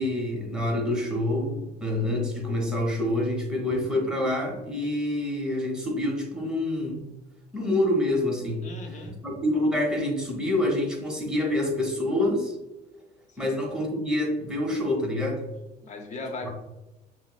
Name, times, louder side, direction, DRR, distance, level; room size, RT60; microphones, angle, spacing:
voice 1, 0.0-7.0 7.5-8.6 9.2-12.6 13.4-15.4 16.4-16.5, left 1 dB, 5° right, -1 dB, 0.9 m, -27 dB
voice 2, 8.6-9.1 13.3-13.6 15.8-16.5, left 3 dB, 45° left, 3 dB, 0.7 m, -38 dB
5.6 x 2.0 x 2.3 m, 0.98 s
cardioid pair, 110°, 17 cm